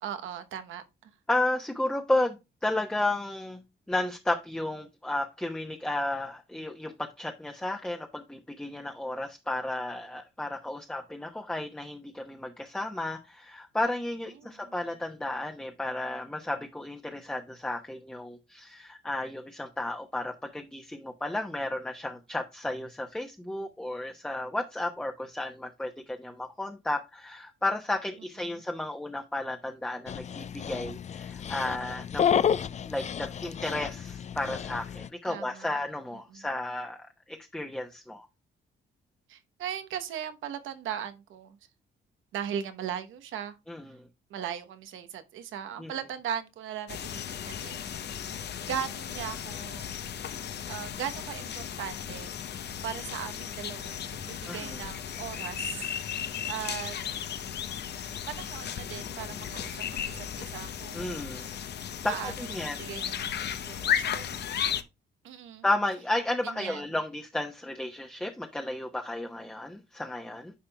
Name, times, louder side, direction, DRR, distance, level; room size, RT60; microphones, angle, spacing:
voice 1, 0.0-1.1 14.4-14.6 35.2-35.8 36.3-36.5 39.3-41.6 42.3-43.6 44.3-47.8 48.7-50.0 50.7-52.3 52.8-55.9 56.5-57.0 58.3-61.2 62.1-62.3 62.6-64.4 65.2-65.6 66.5-66.8, right 9 dB, 80° right, 1.0 m, -38 dB
voice 2, 1.3-3.6 3.9-32.5 32.9-38.3 43.7-44.1 45.8-45.9 54.5-54.8 60.9-61.5 62.0-62.9 65.6-70.5, left 1 dB, 5° left, 0.9 m, -33 dB
Dog, 30.1-35.1, left 8 dB, 35° left, 0.4 m, -31 dB
sound 1, 46.9-64.8, left 8 dB, 55° left, 0.8 m, -35 dB
9.9 x 5.4 x 2.3 m
cardioid pair, 90°, 20 cm